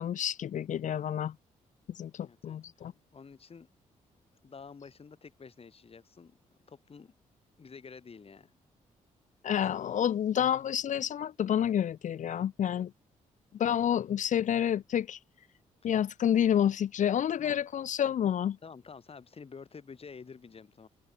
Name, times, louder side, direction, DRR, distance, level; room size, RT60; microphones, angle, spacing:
voice 1, 0.0-1.3 2.0-2.9 9.4-12.9 13.5-15.2 15.8-18.6, left 9 dB, 60° left, 0.7 m, -29 dB
voice 2, 2.2-3.7 4.4-6.4 6.7-7.1 7.6-8.5 9.6-9.7 13.7-14.0 15.8-16.0 17.4-17.6 18.6-20.9, left 5 dB, 45° left, 6.6 m, -50 dB
cardioid pair, 75°, 14 cm